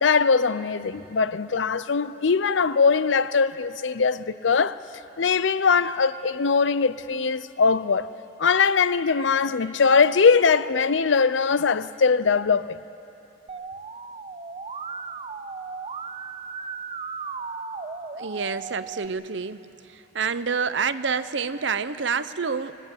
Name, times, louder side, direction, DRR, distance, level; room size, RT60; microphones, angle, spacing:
voice 1, 0.0-4.8 5.2-8.1 8.4-12.8, left 5 dB, 70° left, 0.6 m, -21 dB
Musical instrument, 13.5-19.1, right 4 dB, 30° right, 0.6 m, -36 dB
voice 2, 18.2-19.6 20.1-22.8, right 5 dB, 65° right, 0.7 m, -27 dB
25.5 x 18.5 x 8.9 m
head